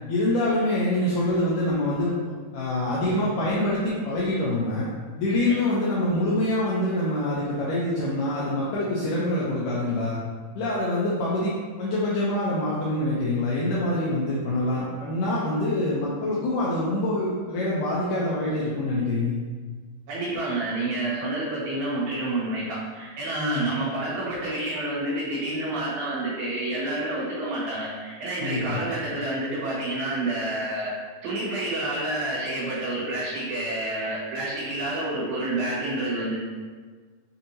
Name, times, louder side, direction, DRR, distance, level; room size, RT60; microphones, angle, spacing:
voice 1, 0.1-2.1 2.5-4.9 5.2-10.2 10.5-19.4 23.4-23.7 28.4-28.8, left 1 dB, 90° left, -7 dB, 1.8 m, -25 dB
voice 2, 20.1-30.9 31.2-36.3, right 2 dB, 70° right, -9 dB, 3.3 m, -29 dB
7.0 x 2.7 x 2.7 m, 1.5 s
omnidirectional pair, 4.6 m